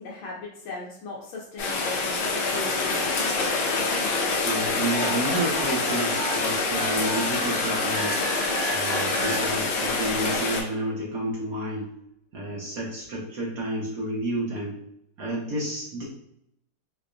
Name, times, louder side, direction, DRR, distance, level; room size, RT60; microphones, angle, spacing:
voice 1, 0.0-3.2, left 3 dB, 90° left, -5 dB, 1.4 m, -38 dB
Rain, 1.6-10.6, left 3 dB, 70° left, 1.3 m, -26 dB
voice 2, 4.4-11.9 12.3-14.8 15.2-16.0, right 1 dB, 60° right, -4 dB, 1.0 m, -30 dB
sound 1, 4.9-10.0, right 5 dB, 85° right, 1.5 m, -36 dB
4.6 x 2.2 x 2.5 m, 0.75 s
omnidirectional pair, 2.1 m